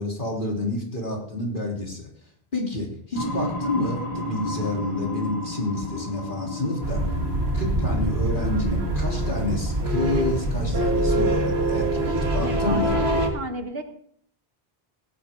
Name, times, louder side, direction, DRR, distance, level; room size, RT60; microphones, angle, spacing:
voice 1, 0.0-2.1 2.5-7.2 7.5-13.0, left 2 dB, 50° left, -1 dB, 3.5 m, -29 dB
sound 1, 3.1-12.7, left 1 dB, 25° left, 7.5 m, -34 dB
sound 2, 6.8-13.3, right 1 dB, 85° right, 2.0 m, -24 dB
voice 2, 11.9-13.8, right 2 dB, 65° right, 6 dB, 1.7 m, -34 dB
17.0 x 12.5 x 3.8 m, 0.65 s
omnidirectional pair, 1.1 m